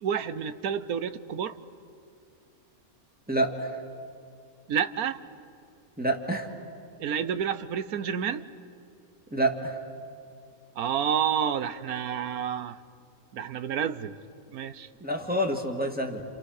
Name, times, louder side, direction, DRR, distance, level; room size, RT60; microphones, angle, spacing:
voice 1, 0.0-1.6 4.7-5.2 7.0-8.4 10.8-12.8 13.3-14.1 14.5-14.9, right 8 dB, 80° right, 13 dB, 1.3 m, -29 dB
voice 2, 3.3-3.8 6.0-6.5 9.3-9.8 15.0-16.2, right 1 dB, 5° right, 1 dB, 2.0 m, -28 dB
29.5 x 28.0 x 6.6 m, 2.5 s
omnidirectional pair, 1.5 m